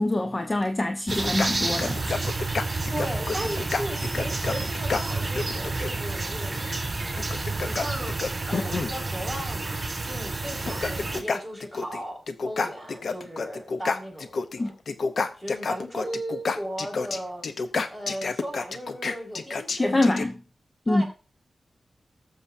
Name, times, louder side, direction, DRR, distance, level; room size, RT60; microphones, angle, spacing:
voice 1, 0.0-2.2 14.6-14.7 19.8-20.3 20.9-21.0, left 2 dB, 35° left, 1.0 m, -24 dB
sound 1, 1.1-5.9 7.2-9.0 10.0-10.1 10.5-12.0 12.3-14.6 14.9-20.3, left 4 dB, 75° left, 0.8 m, -29 dB
sound 2, 1.1-11.2, right 3 dB, 40° right, 4.1 m, -30 dB
voice 2, 2.9-6.8 7.6-14.7 15.4-17.5 17.9-20.1 20.9-21.0, equal, 10° left, 4.8 m, -36 dB
20.0 x 6.9 x 2.7 m
wide cardioid pair, 70°, 0 cm